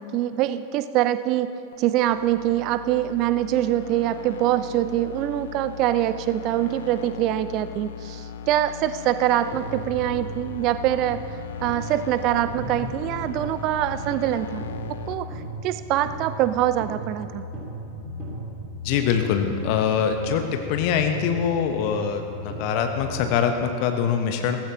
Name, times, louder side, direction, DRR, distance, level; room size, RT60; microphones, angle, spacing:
voice 1, 0.0-1.5 1.8-11.2 11.6-17.4, right 13 dB, 40° right, 13 dB, 0.6 m, -24 dB
sound 1, 1.7-15.1, left 7 dB, 60° left, 0.7 m, -38 dB
sound 2, 9.5-23.5, right 1 dB, 20° right, 3.6 m, -36 dB
voice 2, 18.8-24.6, left 7 dB, 45° left, 6 dB, 1.1 m, -24 dB
16.5 x 15.5 x 3.0 m, 2.9 s
figure-of-eight pair, 90°, 0 cm